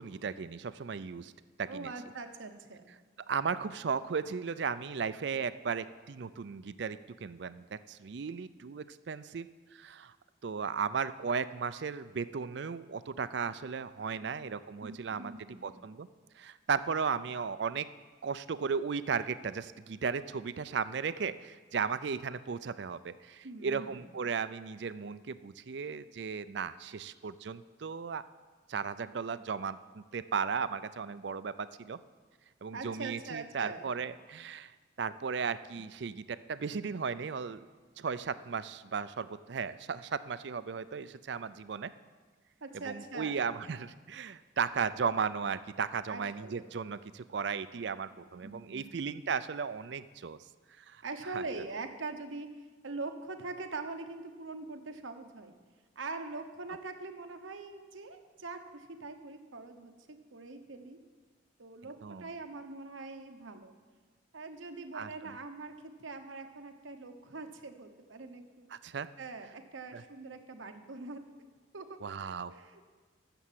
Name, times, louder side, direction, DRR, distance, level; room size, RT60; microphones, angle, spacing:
voice 1, 0.0-1.3 1.6-1.9 3.3-10.1 10.4-15.3 15.6-16.1 16.4-17.9 18.2-28.2 28.7-32.0 32.6-34.7 35.0-37.7 38.0-41.9 42.9-50.4 50.8-51.0 51.3-51.4 62.0-62.3 64.9-65.4 68.7-69.1 69.9-70.0 72.0-72.5, right 6 dB, 65° right, 15 dB, 0.4 m, -35 dB
voice 2, 1.7-2.8 14.8-15.9 23.4-24.4 32.7-34.0 42.6-43.5 46.1-46.6 48.2-49.0 51.0-52.5 52.8-55.5 56.0-61.0 61.6-63.7 64.3-68.7 69.2-71.2 71.7-72.0 72.5-72.9, right 3 dB, 85° right, 6 dB, 1.1 m, -43 dB
12.5 x 7.0 x 7.5 m, 1.4 s
head